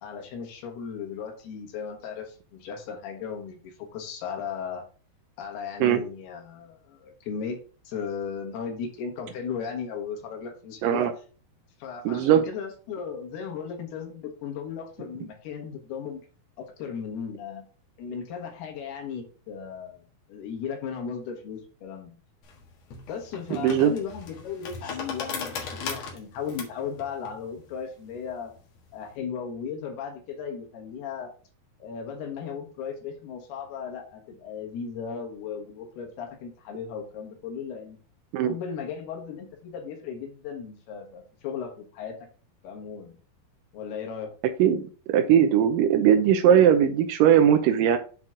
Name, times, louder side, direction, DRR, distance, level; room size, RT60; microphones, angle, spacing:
voice 1, 0.0-4.8 5.4-7.6 7.8-11.1 11.8-16.2 16.6-17.6 18.0-22.1 23.1-28.5 28.9-31.3 31.8-38.0 38.4-42.2 42.6-43.2 43.7-44.3, left 6 dB, 80° left, 2 dB, 3.3 m, -36 dB
voice 2, 12.1-12.4 23.5-23.9 38.3-38.6 44.6-44.8 45.1-48.0, right 9 dB, 90° right, 7 dB, 2.0 m, -19 dB
sound 1, 22.4-29.1, left 5 dB, 55° left, 2.1 m, -39 dB
8.0 x 4.5 x 3.7 m, 0.38 s
omnidirectional pair, 4.6 m